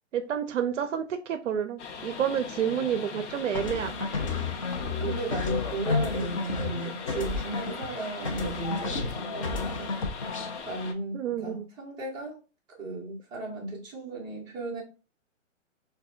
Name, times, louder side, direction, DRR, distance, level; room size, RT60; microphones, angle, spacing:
voice 1, 0.1-4.1 5.0-5.2 11.1-11.7, right 8 dB, 70° right, 0.5 m, -29 dB
sound 1, 1.8-10.9, left 5 dB, 60° left, 0.8 m, -40 dB
sound 2, 3.5-8.0 8.2-10.6, left 4 dB, 30° left, 0.4 m, -32 dB
voice 2, 5.0-9.9 10.6-12.4 12.8-14.8, right 2 dB, 10° right, 0.7 m, -35 dB
4.8 x 2.2 x 2.3 m
hypercardioid pair, 145°, 38 cm